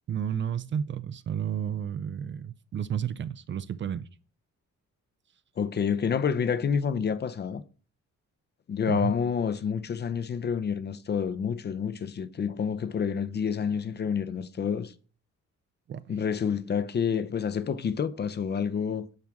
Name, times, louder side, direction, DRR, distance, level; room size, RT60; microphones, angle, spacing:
voice 1, 0.1-4.1 8.9-9.1 15.9-16.0, right 9 dB, 40° right, 0.4 m, -31 dB
voice 2, 5.6-7.6 8.7-14.9 16.1-19.1, left 7 dB, 35° left, 0.5 m, -28 dB
10.5 x 7.2 x 3.5 m
wide cardioid pair, 165°, 30 cm